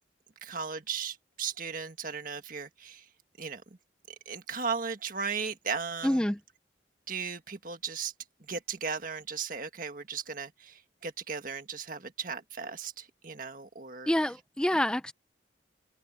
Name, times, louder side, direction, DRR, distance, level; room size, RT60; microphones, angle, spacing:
voice 1, 0.4-3.1 3.4-3.6 4.1-6.2 7.1-8.1 8.4-14.1, right 5 dB, 50° right, 1.7 m, -36 dB
voice 2, 6.0-6.4 14.1-15.1, left 1 dB, 5° left, 0.4 m, -27 dB
open air
head